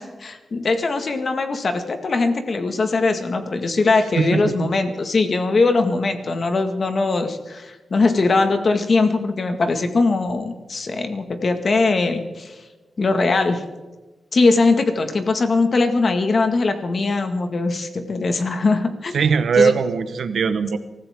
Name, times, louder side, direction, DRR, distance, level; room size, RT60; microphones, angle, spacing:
voice 1, 0.0-12.6 13.0-13.6 14.3-19.2 19.6-19.7, left 3 dB, 50° left, 7 dB, 1.9 m, -21 dB
voice 2, 4.2-4.7 19.1-20.8, right 5 dB, 80° right, 11 dB, 1.2 m, -20 dB
24.0 x 15.0 x 3.7 m, 1.2 s
wide cardioid pair, 120°, 0 cm